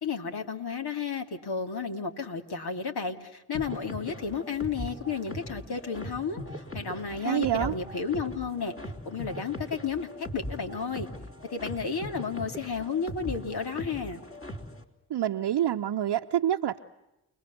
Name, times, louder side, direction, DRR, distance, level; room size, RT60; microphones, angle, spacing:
voice 1, 0.0-6.4 6.7-8.7 9.0-11.1 11.5-14.2, left 5 dB, 60° left, 5 dB, 2.7 m, -32 dB
sound 1, 3.5-14.8, equal, 30° left, 3.5 m, -40 dB
voice 2, 7.2-7.7 15.1-16.8, right 11 dB, 65° right, 1 dB, 1.0 m, -27 dB
29.5 x 20.0 x 8.3 m, 0.95 s
hypercardioid pair, 40°, 44 cm